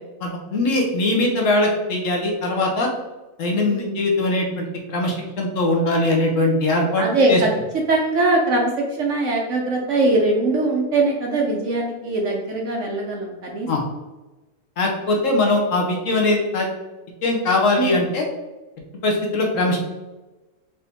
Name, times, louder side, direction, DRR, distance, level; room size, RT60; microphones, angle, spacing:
voice 1, 0.2-2.9 3.4-7.4 13.7-13.8 14.8-16.7 17.2-18.3 19.0-19.8, left 2 dB, 60° left, 0 dB, 1.1 m, -21 dB
voice 2, 3.6-3.9 7.0-7.5 7.9-8.7 9.0-13.7 17.8-18.0, right 2 dB, 65° right, 0 dB, 0.9 m, -21 dB
4.4 x 2.6 x 3.4 m, 1.1 s
omnidirectional pair, 1.6 m